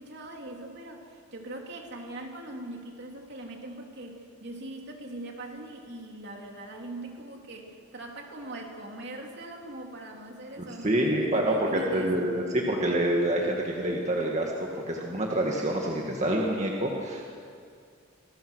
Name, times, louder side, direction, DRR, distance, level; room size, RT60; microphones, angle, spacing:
voice 1, 0.0-12.3 12.6-12.8, right 1 dB, 55° right, 1 dB, 3.3 m, -41 dB
voice 2, 10.6-11.5 11.9-17.2, right 1 dB, 35° right, -1 dB, 2.0 m, -27 dB
28.0 x 20.5 x 6.4 m, 2.3 s
head